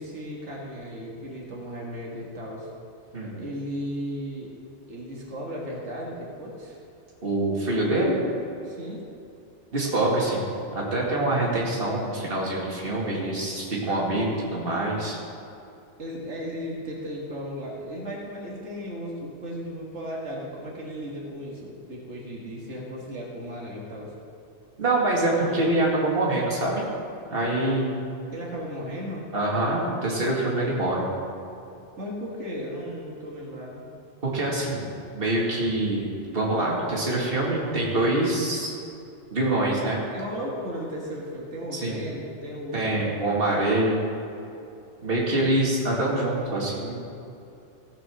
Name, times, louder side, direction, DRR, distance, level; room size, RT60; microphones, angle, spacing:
voice 1, 0.0-2.7 3.3-4.5 4.9-6.8 8.6-9.0 16.0-24.1 28.3-29.3 32.0-33.9 39.8-42.9, equal, 90° right, -3 dB, 2.0 m, -35 dB
voice 2, 7.2-8.2 9.7-15.2 24.8-26.8 27.3-28.0 29.3-31.0 34.2-36.1 36.3-38.7 39.3-40.0 41.7-42.0 42.7-44.0 45.0-47.0, right 1 dB, 55° right, -4 dB, 2.3 m, -25 dB
16.0 x 5.7 x 6.2 m, 2.8 s
omnidirectional pair, 1.2 m